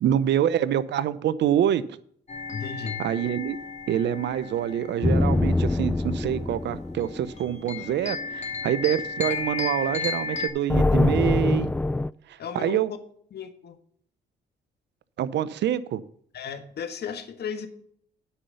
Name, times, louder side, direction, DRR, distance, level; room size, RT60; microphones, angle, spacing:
voice 1, 0.0-1.8 3.0-3.6 3.9-11.7 12.3-12.9 15.2-16.0, right 10 dB, 70° right, 16 dB, 0.8 m, -26 dB
sound 1, 2.3-10.5, left 4 dB, 35° left, 2.9 m, -34 dB
voice 2, 2.5-3.0 12.4-12.8 13.3-13.8 16.3-17.7, left 7 dB, 60° left, 9 dB, 1.5 m, -35 dB
sound 2, 5.0-7.7 10.7-12.1, left 2 dB, 10° left, 0.3 m, -24 dB
9.9 x 5.7 x 6.9 m, 0.63 s
supercardioid pair, 60°, 19 cm